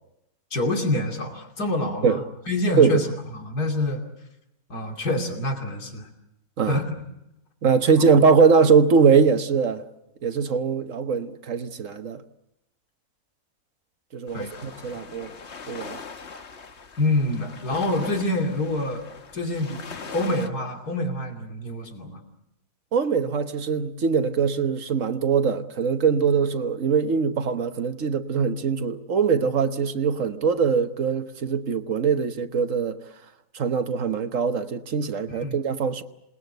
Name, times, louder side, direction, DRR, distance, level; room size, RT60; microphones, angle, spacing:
voice 1, 0.5-2.2 2.5-4.0 4.7-6.1 6.7-6.9 14.3-14.5 14.9-15.0 17.0-19.1 19.3-19.8 20.1-22.2 35.3-35.6, left 1 dB, 85° left, 3.3 m, -26 dB
voice 2, 7.6-9.8 10.2-12.2 14.1-15.3 15.7-16.0 22.9-33.0 33.5-36.0, right 5 dB, 60° right, 1.4 m, -22 dB
sound 1, 14.3-20.5, left 5 dB, 45° left, 1.5 m, -41 dB
27.5 x 20.0 x 7.9 m
omnidirectional pair, 1.6 m